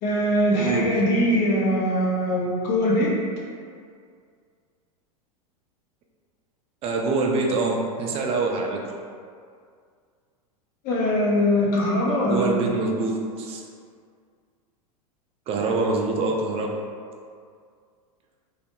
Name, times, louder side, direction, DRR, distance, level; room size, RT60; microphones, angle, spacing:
voice 1, 0.0-3.1 10.8-12.5, equal, 45° left, -5 dB, 0.7 m, -22 dB
voice 2, 0.6-1.0 6.8-8.8 12.2-13.6 15.5-16.8, right 3 dB, 30° right, 0 dB, 0.4 m, -25 dB
2.3 x 2.0 x 2.9 m, 2.2 s
hypercardioid pair, 105°, 19 cm